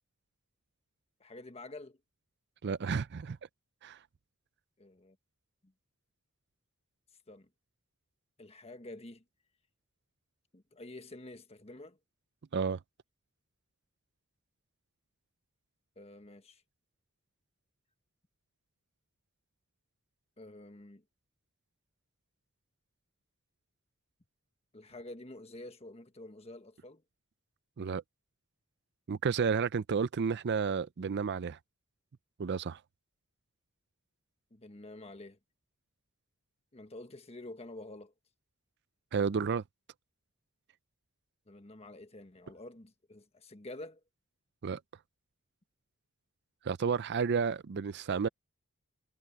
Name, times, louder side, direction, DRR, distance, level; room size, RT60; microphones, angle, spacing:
voice 1, 1.2-2.0 4.8-5.2 5.6-5.7 7.3-7.5 8.4-9.2 10.5-12.0 16.0-16.6 20.4-21.0 24.7-27.0 34.5-35.4 36.7-38.1 41.5-44.0, left 2 dB, 30° left, 1.4 m, -48 dB
voice 2, 2.6-3.4 3.8-4.0 12.5-12.8 27.8-28.0 29.1-31.6 32.4-32.8 39.1-39.6 44.6-44.8 46.6-48.3, right 5 dB, 55° right, 0.5 m, -31 dB
head